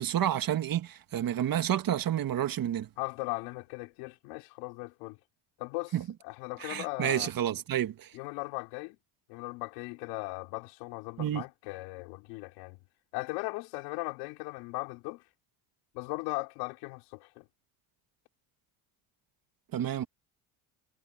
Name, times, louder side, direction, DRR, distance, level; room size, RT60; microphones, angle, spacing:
voice 1, 0.0-2.9 5.9-6.0 6.6-8.1 11.2-11.4 19.7-20.1, right 11 dB, 50° right, 1.9 m, -30 dB
voice 2, 3.0-5.2 5.6-5.9 6.2-7.3 8.1-9.0 9.3-12.8 13.1-15.2 15.9-17.4, left 24 dB, 85° left, 3.3 m, -38 dB
supercardioid pair, 90°, 45 cm